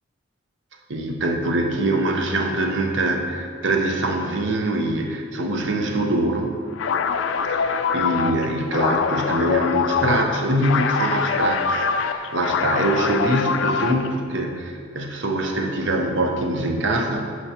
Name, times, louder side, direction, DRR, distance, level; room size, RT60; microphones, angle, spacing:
voice 1, 0.9-6.6 7.5-17.3, right 1 dB, 65° right, 2 dB, 0.8 m, -23 dB
sound 1, 6.7-14.2, left 6 dB, 70° left, 0.3 m, -24 dB
11.0 x 4.6 x 2.8 m, 2.1 s
head